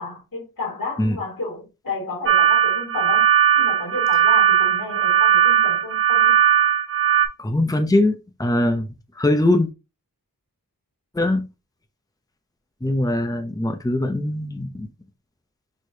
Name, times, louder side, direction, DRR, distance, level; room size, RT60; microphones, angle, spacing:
voice 1, 0.0-3.3 3.6-6.4, left 3 dB, 75° left, 3.1 m, -32 dB
sound 1, 2.3-7.3, right 10 dB, 40° right, 1.2 m, -18 dB
voice 2, 7.4-8.9 9.1-9.7 11.1-11.5 12.8-14.9, left 1 dB, 10° left, 0.7 m, -21 dB
6.4 x 3.0 x 2.8 m
wide cardioid pair, 45°, 35 cm